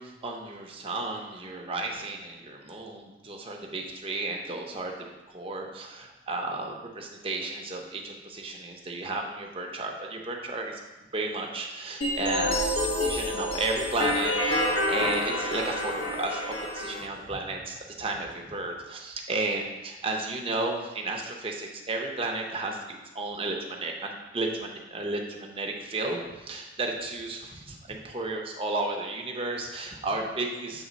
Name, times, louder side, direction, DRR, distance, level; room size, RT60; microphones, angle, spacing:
voice 1, 0.0-10.8 11.1-30.8, right 2 dB, 30° right, 1 dB, 0.8 m, -33 dB
sound 1, 12.0-17.0, left 1 dB, 70° left, 1.2 m, -28 dB
7.2 x 3.5 x 5.2 m, 1.1 s
head